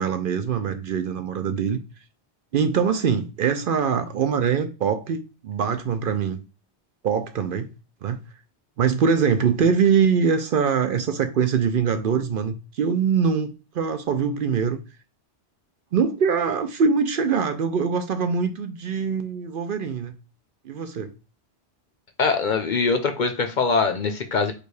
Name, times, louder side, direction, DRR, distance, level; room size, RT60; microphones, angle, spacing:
voice 1, 0.0-1.8 2.5-6.4 7.0-7.7 8.0-8.2 8.8-14.8 15.9-20.1 20.6-21.1, right 6 dB, 60° right, 0.6 m, -23 dB
voice 2, 22.2-24.5, left 4 dB, 50° left, 0.7 m, -22 dB
4.9 x 2.3 x 4.7 m
omnidirectional pair, 1.1 m